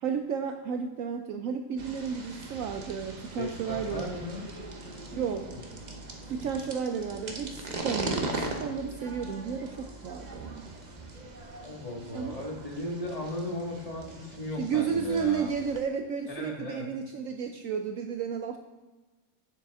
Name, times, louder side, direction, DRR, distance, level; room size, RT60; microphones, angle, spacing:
voice 1, 0.0-4.2 5.1-5.5 6.3-10.7 12.1-12.4 14.5-18.6, right 6 dB, 85° right, 5 dB, 0.7 m, -32 dB
sound 1, 1.8-15.8, right 2 dB, 40° right, 0.6 m, -40 dB
voice 2, 3.4-4.4 5.5-5.6 11.6-15.5 16.3-16.9, left 2 dB, 20° left, -1 dB, 1.5 m, -37 dB
9.8 x 7.0 x 3.5 m, 1.2 s
omnidirectional pair, 2.0 m